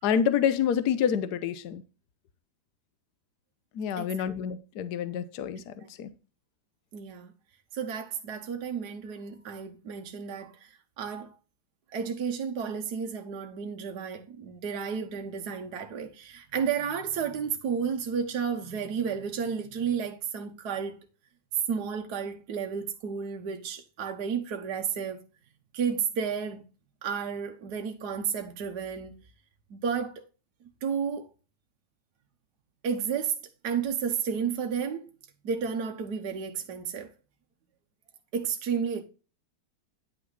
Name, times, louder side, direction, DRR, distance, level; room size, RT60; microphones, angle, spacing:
voice 1, 0.0-1.8 3.7-6.1, left 8 dB, 60° left, 1.2 m, -28 dB
voice 2, 4.0-4.3 5.6-6.1 6.9-7.3 7.7-11.3 11.9-21.0 21.7-25.2 25.7-26.6 27.0-29.2 29.7-30.2 30.8-31.3 32.8-33.3 33.6-35.1 35.4-37.1 38.3-39.0, right 6 dB, 60° right, 1.4 m, -32 dB
10.0 x 5.7 x 3.9 m
omnidirectional pair, 2.2 m